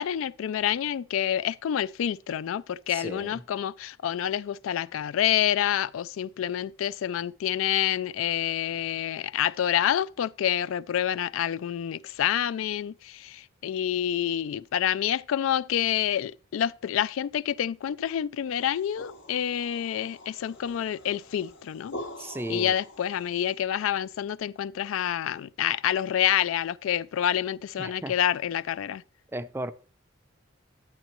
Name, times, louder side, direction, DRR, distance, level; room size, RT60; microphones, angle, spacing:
voice 1, 0.0-21.9 22.5-29.0, left 10 dB, 80° left, 0.3 m, -28 dB
voice 2, 2.9-3.4 22.2-22.7 27.8-28.1 29.3-29.7, right 1 dB, 10° right, 0.4 m, -35 dB
sound 1, 18.6-23.6, left 1 dB, 60° left, 0.7 m, -44 dB
10.5 x 8.9 x 3.0 m
head